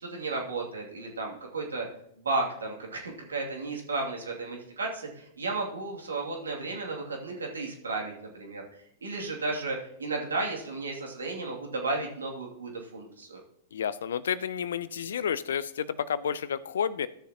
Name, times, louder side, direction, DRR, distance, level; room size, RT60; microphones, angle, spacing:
voice 1, 0.0-1.9 2.2-8.6 9.0-13.4, right 3 dB, 90° right, -1 dB, 2.5 m, -33 dB
voice 2, 13.7-17.1, left 8 dB, 75° left, 17 dB, 0.5 m, -30 dB
15.5 x 6.8 x 2.9 m, 0.73 s
hypercardioid pair, 110°, 0 cm